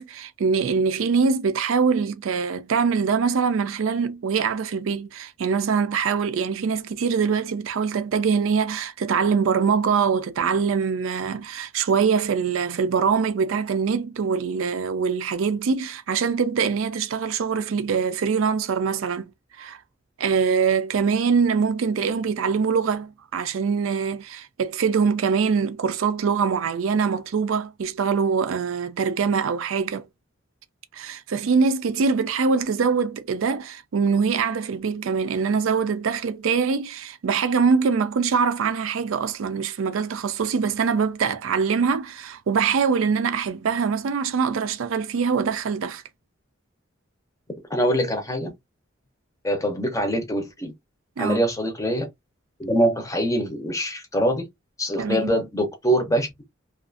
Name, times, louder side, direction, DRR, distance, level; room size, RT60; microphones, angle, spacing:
voice 1, 0.0-19.3 19.6-19.8 20.2-30.0 30.9-46.0 51.2-51.4 54.9-55.4, right 5 dB, 80° right, 0.4 m, -23 dB
voice 2, 47.7-48.5 49.4-50.7 51.2-52.1 52.6-54.4 54.8-56.3, equal, 15° left, 0.6 m, -23 dB
2.5 x 2.4 x 2.5 m
head